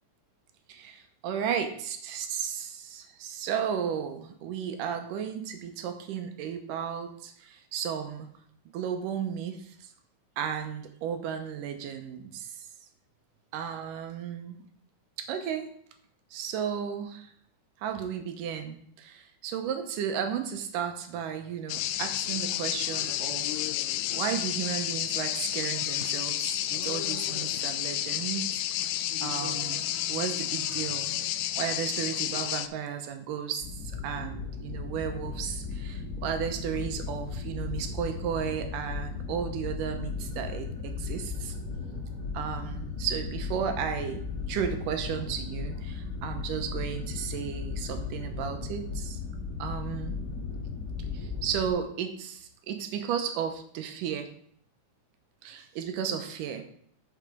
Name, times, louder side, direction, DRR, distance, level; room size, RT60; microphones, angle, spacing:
voice 1, 0.7-8.3 8.7-9.7 10.4-12.7 13.5-14.6 15.2-15.7 16.3-17.3 17.8-23.6 24.1-28.6 29.2-29.8 30.1-31.1 31.6-41.6 42.3-44.2 44.5-49.2 49.6-50.2 51.1-54.3 55.4-56.6, right 8 dB, 90° right, 6 dB, 2.5 m, -34 dB
sound 1, 21.7-32.7, left 13 dB, 85° left, 2.1 m, -31 dB
sound 2, 33.6-51.7, left 4 dB, 35° left, 1.9 m, -36 dB
6.8 x 6.5 x 4.9 m, 0.65 s
omnidirectional pair, 3.7 m